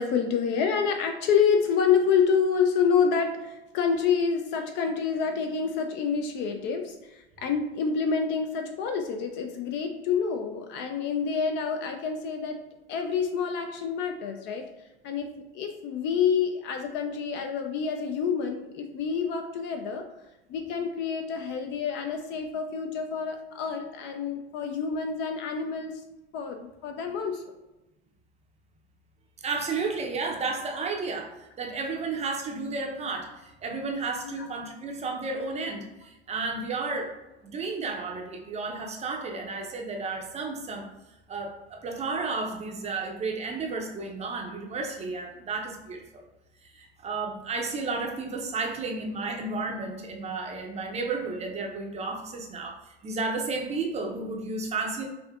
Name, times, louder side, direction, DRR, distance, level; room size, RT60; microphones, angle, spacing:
voice 1, 0.0-12.6 12.9-14.7 15.0-20.1 20.5-26.0 26.3-27.4 34.2-34.4, left 6 dB, 35° left, 5 dB, 0.4 m, -27 dB
voice 2, 29.4-37.1 37.4-40.9 41.3-46.2 46.6-55.1, right 3 dB, 20° right, 2 dB, 0.6 m, -32 dB
5.6 x 2.5 x 2.4 m, 0.99 s
hypercardioid pair, 90°, 32 cm